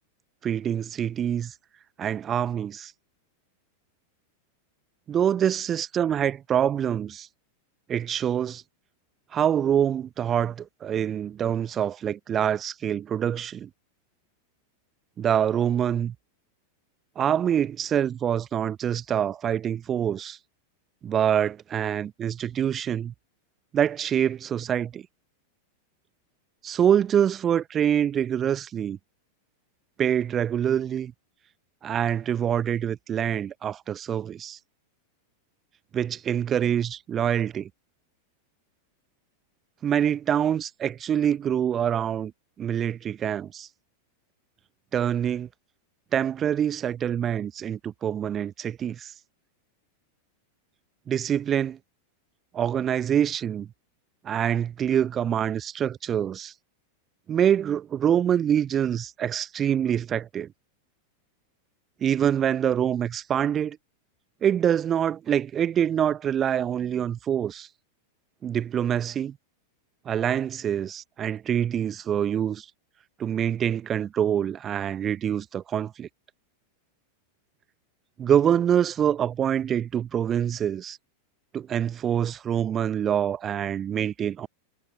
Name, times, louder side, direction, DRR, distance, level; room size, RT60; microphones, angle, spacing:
voice 1, 0.4-1.5 2.0-2.9 5.1-7.3 7.9-8.6 9.3-13.7 15.2-16.1 17.2-20.4 21.0-23.1 23.7-25.1 26.6-29.0 30.0-31.1 31.8-34.6 35.9-37.7 39.8-42.3 42.6-43.7 44.9-45.5 46.1-49.1 51.1-51.8 52.5-53.7 54.2-56.5 57.3-60.5 62.0-63.8 64.4-67.7 68.4-69.4 70.1-72.7 73.2-76.1 78.2-81.0 81.5-84.5, right 9 dB, 25° right, 0.8 m, -25 dB
figure-of-eight pair, 90°, 0 cm